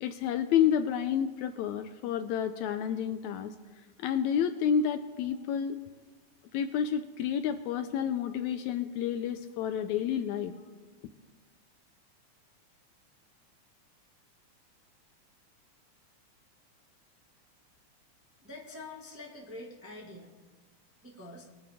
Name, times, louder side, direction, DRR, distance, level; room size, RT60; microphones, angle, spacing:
voice 1, 0.0-3.5 4.0-5.8 6.5-10.5, left 8 dB, 80° left, 9 dB, 1.8 m, -30 dB
voice 2, 18.4-20.3 21.0-21.4, left 2 dB, 10° right, -3 dB, 0.9 m, -45 dB
22.5 x 8.5 x 3.5 m, 1.3 s
omnidirectional pair, 3.5 m